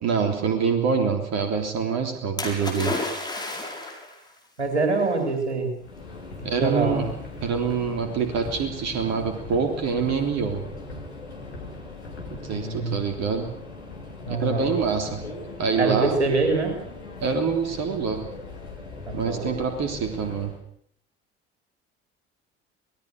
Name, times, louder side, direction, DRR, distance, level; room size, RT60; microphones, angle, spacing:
voice 1, 0.0-3.0 6.4-7.1 7.4-10.7 12.3-13.5 14.3-15.3 15.6-16.2 17.2-18.3 19.1-20.5, right 5 dB, 50° right, 6 dB, 3.4 m, -25 dB
Splash splatter, 2.4-4.2 5.1-5.2, left 2 dB, 10° left, 6.8 m, -31 dB
voice 2, 4.6-5.7 6.5-7.1 12.5-13.0 14.3-14.7 15.8-16.8 19.1-19.5, right 3 dB, 85° right, 3 dB, 3.9 m, -25 dB
Subway metro underground, 5.8-20.6, left 3 dB, 85° left, 3.6 m, -39 dB
26.5 x 19.0 x 6.5 m, 0.63 s
figure-of-eight pair, 50°, 33 cm